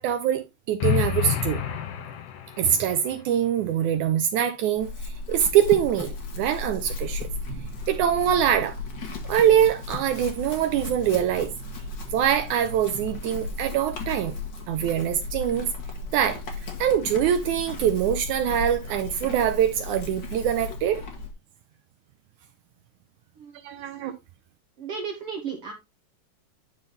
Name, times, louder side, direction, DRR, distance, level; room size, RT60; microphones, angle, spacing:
voice 1, 0.0-1.6 2.6-8.8 9.2-11.5 12.1-14.4 14.7-15.7 16.1-21.0 23.6-24.1, right 10 dB, 80° right, 2.0 m, -24 dB
sound 1, 0.8-2.9, left 10 dB, 75° left, 2.6 m, -28 dB
Chewing mastication / Livestock farm animals working animals, 4.8-21.3, left 3 dB, 45° left, 1.7 m, -35 dB
voice 2, 23.4-24.0 24.8-25.7, right 6 dB, 60° right, 1.6 m, -35 dB
10.5 x 3.9 x 4.0 m
omnidirectional pair, 3.8 m